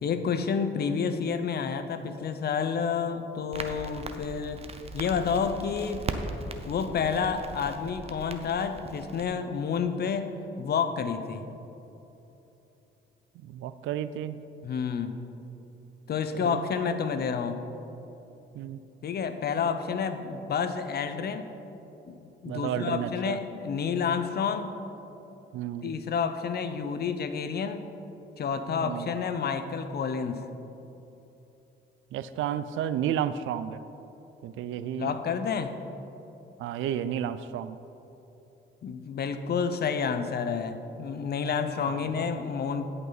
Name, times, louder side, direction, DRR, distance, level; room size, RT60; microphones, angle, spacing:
voice 1, 0.0-4.6 4.9-6.0 6.6-10.3 10.6-11.5 14.6-15.1 16.1-17.6 19.0-21.5 22.1-24.8 25.8-27.9 28.4-30.5 35.0-35.8 38.8-42.9, left 6 dB, 55° left, 9 dB, 0.8 m, -29 dB
Crackle, 3.5-9.2, right 3 dB, 30° right, 0.8 m, -39 dB
voice 2, 13.4-14.4 16.4-16.7 18.5-18.8 22.5-23.4 25.5-25.9 28.8-29.1 32.1-33.8 34.4-35.1 36.6-37.8 41.9-42.1, right 10 dB, 80° right, 13 dB, 0.4 m, -32 dB
16.5 x 5.6 x 4.1 m, 3.0 s
cardioid pair, 90°, 20 cm